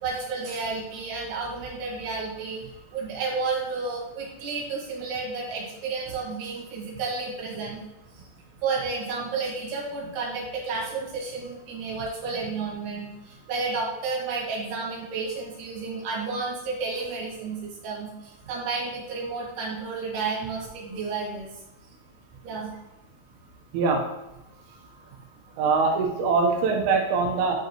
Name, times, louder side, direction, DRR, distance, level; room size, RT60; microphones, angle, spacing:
voice 1, 0.0-2.6 2.9-7.8 8.2-8.3 8.6-21.5 22.4-22.7, right 4 dB, 60° right, -4 dB, 3.6 m, -31 dB
voice 2, 25.6-27.5, right 4 dB, 85° right, 1 dB, 3.7 m, -23 dB
10.5 x 5.3 x 3.1 m, 0.95 s
omnidirectional pair, 5.7 m